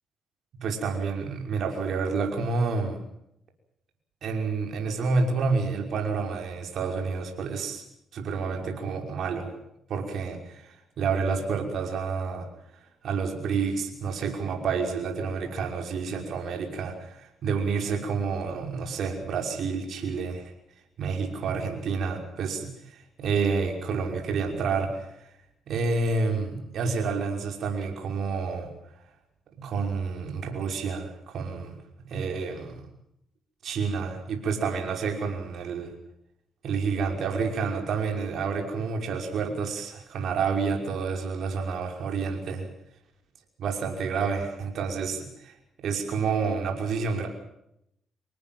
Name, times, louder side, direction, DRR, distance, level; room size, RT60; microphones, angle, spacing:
voice 1, 0.5-3.0 4.2-7.8 8.1-9.5 9.9-12.5 13.0-20.5 21.0-25.1 25.7-28.7 29.6-32.9 33.6-35.9 36.6-42.7 43.6-45.5 45.8-47.3, right 5 dB, 65° right, 3 dB, 5.7 m, -29 dB
26.0 x 19.5 x 7.7 m, 0.78 s
cardioid pair, 90°, 0 cm